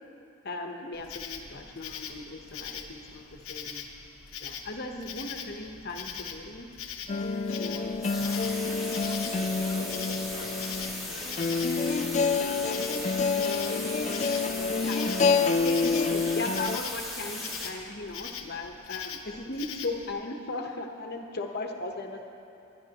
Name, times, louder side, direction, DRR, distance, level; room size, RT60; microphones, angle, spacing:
voice 1, 0.4-3.9 4.4-6.7 7.6-8.8 9.4-9.5 9.9-10.0 14.8-15.0 15.6-22.2, left 2 dB, 50° left, 4 dB, 1.0 m, -37 dB
Insect, 0.9-20.1, left 7 dB, 80° left, 0.9 m, -42 dB
sound 1, 7.1-16.8, left 4 dB, 35° left, 0.4 m, -28 dB
sound 2, 8.0-17.7, left 1 dB, ahead, 1.8 m, -38 dB
voice 2, 9.4-15.7 16.2-16.6, right 1 dB, 70° right, 0 dB, 1.6 m, -46 dB
21.0 x 11.5 x 2.9 m, 2.9 s
head